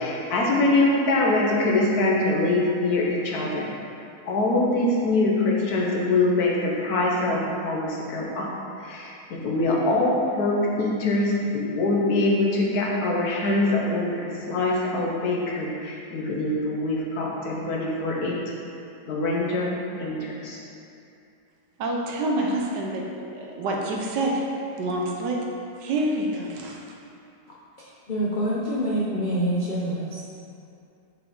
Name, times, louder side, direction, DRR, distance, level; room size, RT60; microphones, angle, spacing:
voice 1, 0.0-3.7 4.2-8.5 8.8-18.4 19.1-20.6, left 2 dB, 65° left, -3 dB, 1.3 m, -24 dB
voice 2, 21.8-24.4 24.8-25.4 25.8-26.8, right 1 dB, 80° right, -1 dB, 1.4 m, -27 dB
voice 3, 27.8-30.2, right 1 dB, 85° left, -7 dB, 0.4 m, -26 dB
6.7 x 4.3 x 3.7 m, 2.6 s
omnidirectional pair, 1.8 m